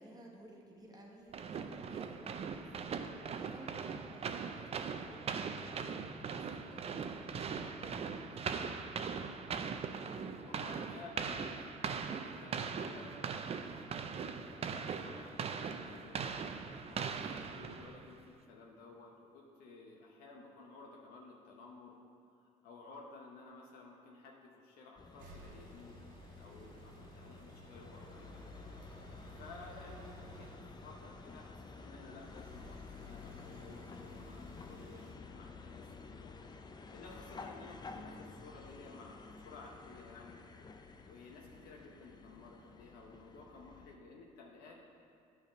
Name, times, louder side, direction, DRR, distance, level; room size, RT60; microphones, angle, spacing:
voice 1, 0.0-2.7 3.3-6.4 6.7-8.9 38.0-38.4, right 2 dB, 25° right, -1 dB, 1.3 m, -56 dB
sound 1, 1.3-18.1, right 6 dB, 40° right, 0.4 m, -40 dB
voice 2, 10.4-13.2 13.9-16.2 16.9-22.0 22.4-26.0 26.4-28.4 29.3-30.5 30.8-36.3 36.9-40.4 41.1-44.8, left 3 dB, 80° left, -1 dB, 0.8 m, -54 dB
sound 2, 25.0-44.0, left 4 dB, 25° left, 0.5 m, -51 dB
sound 3, 25.2-35.1, right 2 dB, 65° right, 1.2 m, -57 dB
8.8 x 3.4 x 5.0 m, 2.3 s
supercardioid pair, 75°, 16 cm